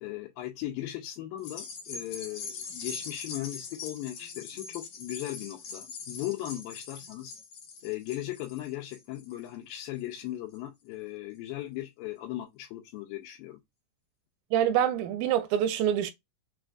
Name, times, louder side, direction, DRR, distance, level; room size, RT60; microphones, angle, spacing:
voice 1, 0.0-7.3 7.8-13.6, left 14 dB, 90° left, 2.4 m, -38 dB
sound 1, 1.4-10.1 10.5-10.6, left 5 dB, 60° left, 2.1 m, -42 dB
voice 2, 14.5-16.1, right 10 dB, 85° right, 2.2 m, -26 dB
5.9 x 2.4 x 2.4 m
omnidirectional pair, 4.1 m